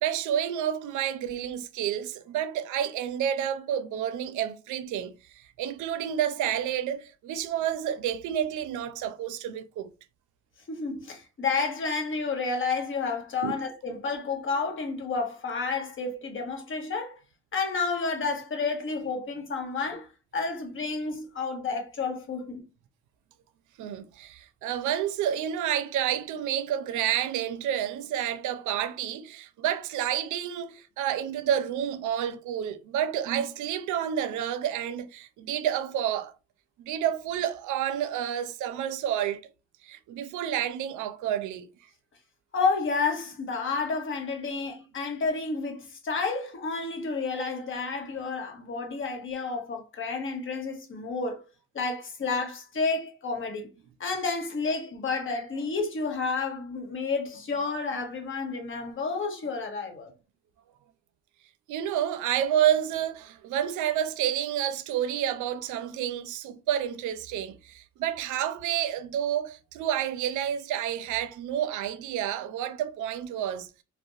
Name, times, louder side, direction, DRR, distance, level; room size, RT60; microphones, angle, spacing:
voice 1, 0.0-5.1 5.6-9.9 13.4-13.6 23.8-36.3 36.8-39.4 39.8-41.7 61.7-73.7, right 10 dB, 75° right, 0.5 m, -29 dB
voice 2, 10.7-17.2 17.5-20.1 20.3-22.6 42.5-51.4 51.7-53.7 54.0-60.1, left 4 dB, 40° left, 0.9 m, -30 dB
2.4 x 2.1 x 2.6 m
cardioid pair, 90°, 30 cm